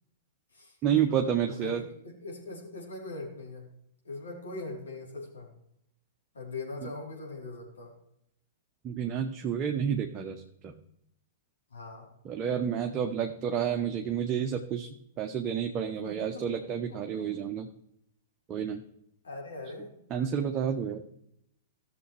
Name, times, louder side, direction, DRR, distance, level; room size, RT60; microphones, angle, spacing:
voice 1, 0.8-1.8 8.8-10.7 12.2-14.9 15.2-17.7 18.5-18.8 20.1-21.0, right 8 dB, 30° right, 3 dB, 0.8 m, -30 dB
voice 2, 1.4-3.7 4.0-5.5 6.3-7.9 11.7-12.1 16.0-16.6 16.9-17.3 19.2-19.9, left 2 dB, 80° left, -3 dB, 3.7 m, -41 dB
15.5 x 6.8 x 3.3 m, 0.75 s
figure-of-eight pair, 105°, 0 cm